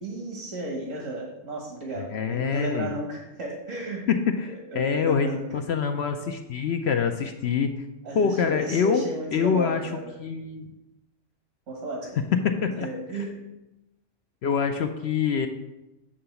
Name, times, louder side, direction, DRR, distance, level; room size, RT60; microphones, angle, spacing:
voice 1, 0.0-4.1 4.5-5.4 8.0-10.1 11.7-12.1 12.8-13.4, right 1 dB, 70° right, -1 dB, 1.8 m, -34 dB
voice 2, 2.1-2.9 4.1-7.7 8.1-9.0 9.3-9.9 10.2-10.7 12.3-12.9 14.4-15.5, left 6 dB, 65° left, 5 dB, 0.8 m, -25 dB
8.9 x 3.8 x 6.9 m, 0.98 s
omnidirectional pair, 1.3 m